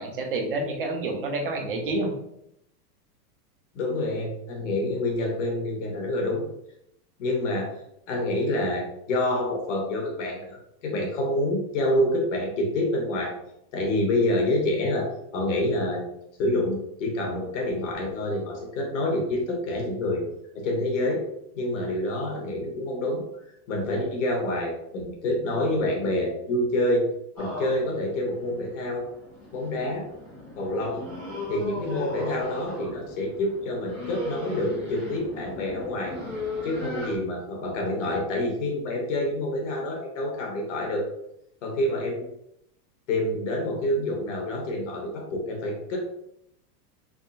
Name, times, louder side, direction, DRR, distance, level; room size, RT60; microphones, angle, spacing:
voice 1, 0.0-2.1, right 2 dB, 40° right, 3 dB, 0.4 m, -28 dB
voice 2, 3.7-6.4 7.2-7.7 8.1-10.6 10.8-13.3 13.7-16.0 16.4-20.2 20.5-21.2 21.5-23.2 23.7-27.0 27.4-29.1 29.5-30.1 30.6-31.0 31.5-36.2 36.6-41.0 41.6-42.2 43.1-46.0, left 1 dB, 50° left, 0 dB, 1.1 m, -27 dB
sound 1, 27.4-37.2, left 1 dB, 5° left, 0.7 m, -37 dB
3.6 x 3.2 x 2.5 m, 0.77 s
supercardioid pair, 180°, 48 cm